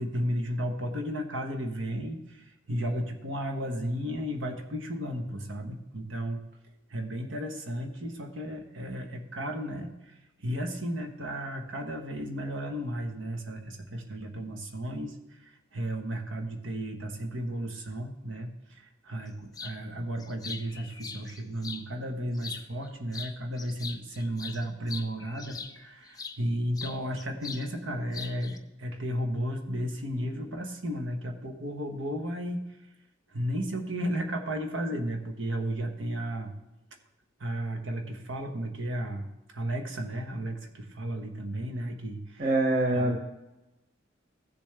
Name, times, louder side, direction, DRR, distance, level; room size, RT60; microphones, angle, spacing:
voice 1, 0.0-6.4 6.9-15.2 15.4-32.6 33.3-36.5 37.4-39.3 39.5-42.5 42.9-43.2, equal, 85° right, 4 dB, 1.3 m, -34 dB
sound 1, 19.5-19.8 20.2-21.9 22.3-22.9 23.1-26.4 26.8-27.7 27.9-28.6, left 5 dB, 20° left, 0.5 m, -41 dB
voice 2, 42.4-43.2, right 2 dB, 50° right, 1 dB, 1.0 m, -24 dB
15.0 x 7.0 x 3.4 m, 0.97 s
head